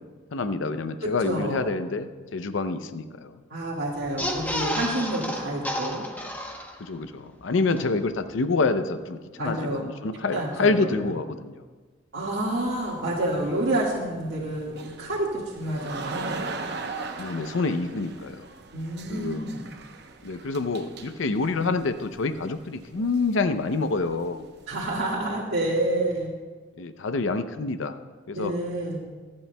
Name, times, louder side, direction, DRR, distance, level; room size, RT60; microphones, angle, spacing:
voice 1, 0.3-3.4 6.8-11.7 17.2-18.4 19.1-19.4 20.2-24.5 26.8-28.0 28.3-28.5, left 3 dB, 80° left, 10 dB, 0.6 m, -27 dB
voice 2, 1.0-1.8 3.5-6.0 7.7-7.8 9.4-9.8 10.3-11.1 12.1-16.4 18.7-19.6 24.7-26.3 28.3-29.1, right 1 dB, 80° right, -7 dB, 1.7 m, -29 dB
sound 1, 4.0-7.0 7.4-7.5 7.7-7.8, left 1 dB, 10° left, 0.9 m, -31 dB
sound 2, 12.5-25.0, right 3 dB, 55° right, 0.8 m, -40 dB
25.5 x 8.6 x 2.2 m, 1.4 s
head